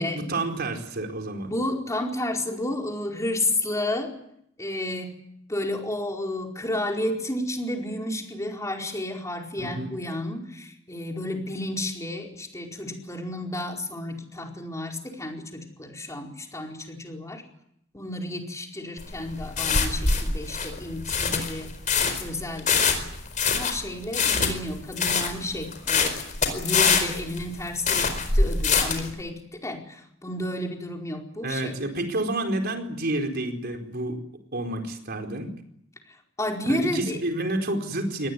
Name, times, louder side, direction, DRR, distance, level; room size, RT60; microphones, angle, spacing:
voice 1, 0.0-1.5 9.6-9.9 31.4-34.2 34.5-35.5 36.6-38.3, right 2 dB, 55° right, 4 dB, 4.6 m, -29 dB
voice 2, 1.4-4.1 4.6-5.1 5.5-17.4 17.9-21.7 22.2-23.1 23.5-26.2 26.5-31.8 36.1-37.2, left 1 dB, 15° left, 1 dB, 4.7 m, -31 dB
sound 1, 19.0-29.1, left 5 dB, 40° left, 4.6 m, -24 dB
24.5 x 19.5 x 9.5 m, 0.73 s
head